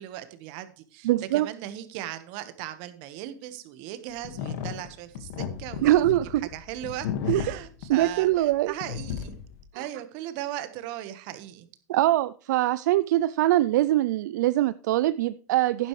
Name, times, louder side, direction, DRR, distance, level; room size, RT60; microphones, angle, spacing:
voice 1, 0.0-6.0 6.3-9.4 9.7-11.7, right 13 dB, 50° right, 1.3 m, -38 dB
voice 2, 1.0-1.5 5.8-6.5 7.3-7.6 7.9-8.7 9.7-9.9 11.9-15.9, right 15 dB, 70° right, 0.4 m, -23 dB
sound 1, 4.2-8.6 8.8-9.6, left 8 dB, 60° left, 1.7 m, -34 dB
10.5 x 10.5 x 3.2 m
supercardioid pair, 130°, 10 cm